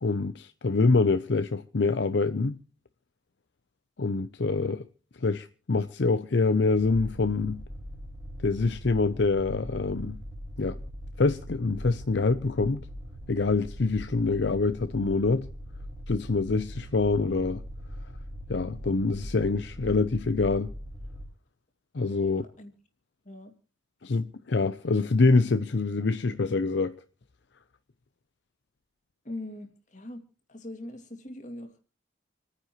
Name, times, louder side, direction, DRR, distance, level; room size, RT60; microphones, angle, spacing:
voice 1, 0.0-2.6 4.0-4.9 5.2-7.6 8.4-10.2 10.6-10.8 11.2-12.9 13.3-15.5 16.1-17.6 18.5-20.7 21.9-22.4 24.0-27.0, left 3 dB, 65° left, 0.6 m, -25 dB
sound 1, 6.7-21.2, equal, 20° right, 1.9 m, -41 dB
voice 2, 22.2-22.7 23.2-23.5 29.2-30.2 30.5-31.8, left 1 dB, 40° left, 2.4 m, -41 dB
28.0 x 9.7 x 3.0 m
head